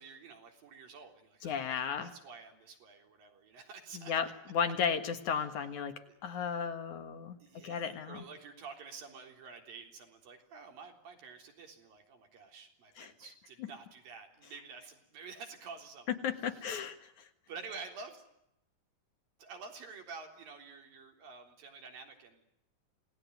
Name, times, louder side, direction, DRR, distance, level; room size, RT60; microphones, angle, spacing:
voice 1, 0.0-4.1 6.1-6.2 7.4-16.1 16.6-16.7 17.5-18.2 19.4-22.4, right 5 dB, 80° right, 4 dB, 5.4 m, -49 dB
voice 2, 1.4-2.1 3.9-7.4 7.6-8.2 13.0-13.1 13.6-13.7 16.1-17.3, left 7 dB, 65° left, 8 dB, 2.9 m, -34 dB
27.5 x 19.5 x 9.5 m, 0.80 s
omnidirectional pair, 4.0 m